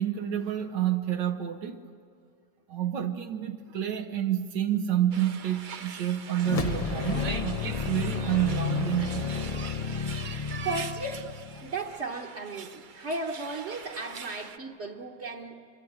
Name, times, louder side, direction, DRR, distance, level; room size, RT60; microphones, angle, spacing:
voice 1, 0.0-1.8 2.7-9.7, right 11 dB, 80° right, 1.5 m, -29 dB
sound 1, 5.1-14.6, right 6 dB, 65° right, 0.4 m, -42 dB
sound 2, 6.4-11.8, left 5 dB, 35° left, 0.5 m, -31 dB
voice 2, 10.6-11.3 11.6-15.6, right 3 dB, 40° right, 1.4 m, -35 dB
25.5 x 22.5 x 8.7 m
omnidirectional pair, 1.9 m